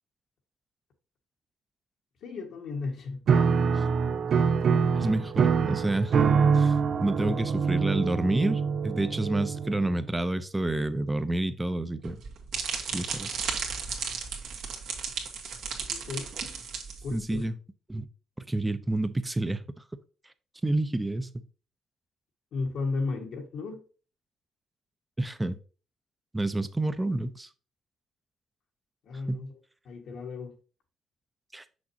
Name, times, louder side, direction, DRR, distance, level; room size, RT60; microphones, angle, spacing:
voice 1, 2.2-3.2 7.2-7.4 15.9-16.3 17.0-17.5 22.5-23.8 29.0-29.6 29.8-30.5, left 3 dB, 75° left, 1.7 m, -34 dB
Piano, 3.3-10.1, right 6 dB, 60° right, 0.6 m, -25 dB
voice 2, 5.0-6.1 6.5-6.7 7.0-12.2 12.9-13.3 17.1-17.5 17.9-18.0 18.5-19.6 20.6-21.4 25.2-25.6 26.3-27.5 29.3-29.4 31.5-31.6, right 2 dB, 15° right, 0.7 m, -29 dB
sound 1, 12.0-17.4, right 6 dB, 75° right, 1.8 m, -34 dB
6.3 x 6.0 x 2.9 m
cardioid pair, 90°, 0 cm